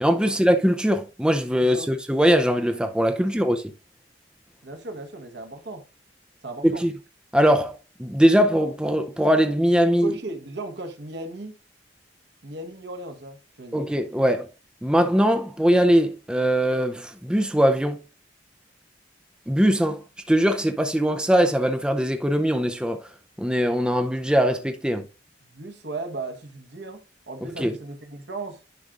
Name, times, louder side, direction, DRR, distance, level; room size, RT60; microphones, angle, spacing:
voice 1, 0.0-3.6 6.6-6.9 7.3-10.1 13.7-14.5 14.8-18.0 19.5-23.1 23.4-25.1 27.6-27.7, equal, 5° right, 0.5 m, -21 dB
voice 2, 1.6-1.9 3.2-3.4 4.6-5.8 6.4-6.8 10.0-11.5 12.4-13.8 25.4-28.6, right 2 dB, 65° right, 1.3 m, -36 dB
10.5 x 5.0 x 2.5 m
head